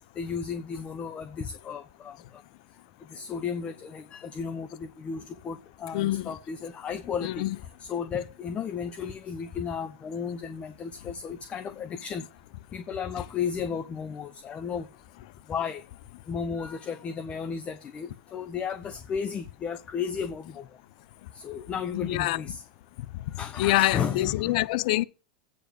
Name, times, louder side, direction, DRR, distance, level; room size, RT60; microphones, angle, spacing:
voice 1, 0.2-2.1 3.1-7.5 7.8-12.2 12.7-14.9 15.5-15.8 16.3-20.7 21.3-22.6 23.4-24.7, left 6 dB, 30° left, 0.9 m, -34 dB
voice 2, 5.9-6.3 7.2-7.6 22.0-22.4 23.6-25.0, left 17 dB, 60° left, 0.6 m, -25 dB
8.5 x 5.0 x 7.6 m
hypercardioid pair, 90°, 4 cm